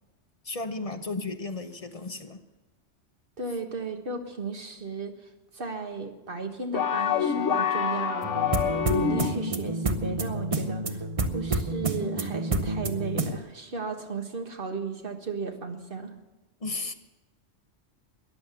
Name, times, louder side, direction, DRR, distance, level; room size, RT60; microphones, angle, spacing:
voice 1, 0.4-2.4 16.6-16.9, left 3 dB, 35° left, 7 dB, 0.8 m, -34 dB
voice 2, 3.4-8.4 8.9-16.1, right 4 dB, 45° right, 4 dB, 1.6 m, -35 dB
sound 1, 6.7-9.6, left 8 dB, 85° left, 1.2 m, -26 dB
sound 2, 8.2-13.4, right 2 dB, 30° right, 0.8 m, -29 dB
14.0 x 10.5 x 6.8 m, 1.1 s
omnidirectional pair, 1.3 m